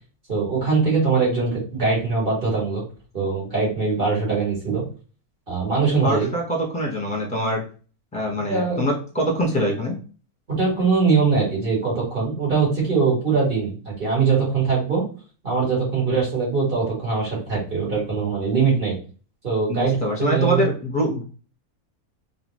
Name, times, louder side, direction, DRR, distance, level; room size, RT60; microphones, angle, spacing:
voice 1, 0.3-2.8 3.1-4.8 5.5-6.3 8.5-8.9 10.5-15.0 15.4-19.0 19.4-20.7, right 4 dB, 35° right, -5 dB, 2.4 m, -22 dB
voice 2, 6.0-7.6 8.1-9.9 19.7-21.2, equal, 5° left, -1 dB, 1.4 m, -24 dB
4.1 x 3.3 x 3.1 m, 0.38 s
omnidirectional pair, 1.6 m